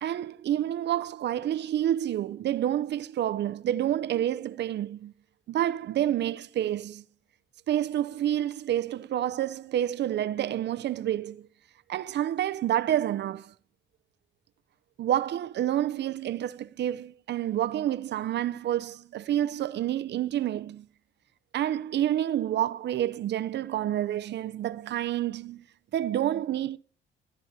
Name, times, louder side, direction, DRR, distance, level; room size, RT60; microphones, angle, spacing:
voice 1, 0.0-5.1 5.5-7.0 7.7-11.5 11.9-13.5 15.0-20.9 21.5-25.6 25.9-26.8, right 11 dB, 60° right, 0.5 m, -28 dB
12.5 x 12.0 x 2.7 m
cardioid pair, 90°, 20 cm